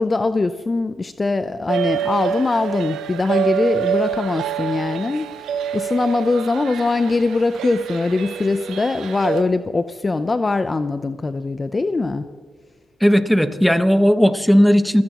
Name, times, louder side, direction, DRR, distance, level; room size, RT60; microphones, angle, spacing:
voice 1, 0.0-12.2, left 3 dB, 30° left, 11 dB, 0.6 m, -22 dB
sound 1, 1.7-9.4, right 9 dB, 85° right, 0.8 m, -26 dB
voice 2, 13.0-15.0, equal, ahead, 9 dB, 1.3 m, -15 dB
28.5 x 17.0 x 3.0 m, 1.5 s
cardioid pair, 65°, 0 cm